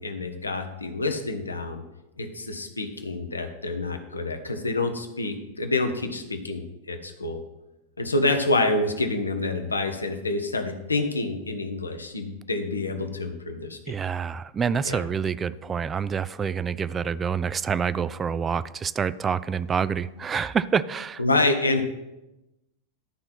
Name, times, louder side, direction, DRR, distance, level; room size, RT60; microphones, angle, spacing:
voice 1, 0.0-1.8 2.2-6.6 6.9-7.4 8.0-13.9 14.8-15.0 21.2-21.8, left 2 dB, 80° left, 6 dB, 0.9 m, -27 dB
voice 2, 13.9-21.2, right 6 dB, 20° right, 16 dB, 0.3 m, -27 dB
11.5 x 4.4 x 5.8 m, 0.95 s
figure-of-eight pair, 90°, 0 cm